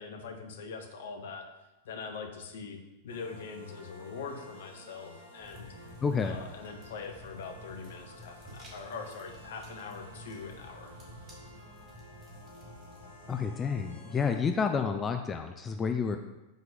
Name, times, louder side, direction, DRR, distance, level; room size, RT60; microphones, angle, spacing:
voice 1, 0.0-1.5 1.8-5.7 6.2-11.0, left 5 dB, 60° left, 5 dB, 0.8 m, -42 dB
sound 1, 3.1-14.4, equal, 80° right, 1.8 m, -52 dB
sound 2, 5.4-13.4, equal, 20° right, 1.5 m, -52 dB
voice 2, 6.0-6.4 13.3-16.2, left 5 dB, 20° left, 6 dB, 0.4 m, -30 dB
5.4 x 3.7 x 5.2 m, 1.0 s
figure-of-eight pair, 90°, 0 cm